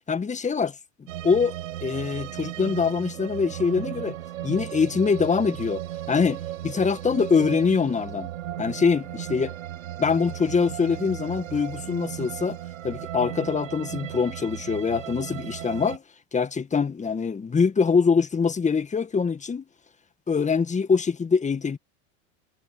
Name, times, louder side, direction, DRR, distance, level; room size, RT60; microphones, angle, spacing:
voice 1, 0.1-0.8 1.2-1.5 1.8-4.2 4.4-5.8 6.1-8.3 8.6-9.5 10.0-12.6 12.8-16.0 16.3-19.6 20.3-21.8, left 5 dB, 20° left, 1.9 m, -24 dB
sound 1, 1.1-16.0, right 13 dB, 75° right, 6.6 m, -36 dB
hypercardioid pair, 90°, 39 cm